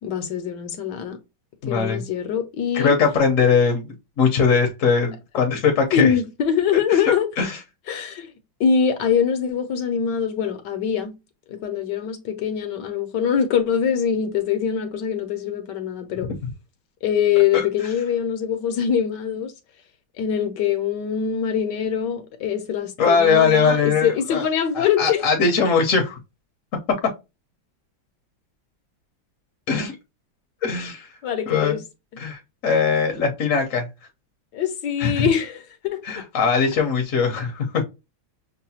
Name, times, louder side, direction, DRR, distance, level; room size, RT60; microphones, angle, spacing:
voice 1, 0.0-1.2 1.7-2.9 5.9-7.3 7.9-8.3 8.6-11.1 11.5-16.3 17.0-19.5 20.2-25.2 31.2-31.8 34.5-36.2, left 8 dB, 70° left, 1.3 m, -23 dB
voice 2, 1.6-2.0 2.7-3.9 4.2-6.1 6.9-7.6 17.5-17.6 23.0-24.5 24.7-26.2 29.7-29.9 30.6-31.1 31.5-31.8 32.2-33.9 35.0-35.3 36.0-37.8, left 5 dB, 55° left, 1.0 m, -20 dB
6.6 x 2.2 x 2.7 m
omnidirectional pair, 2.1 m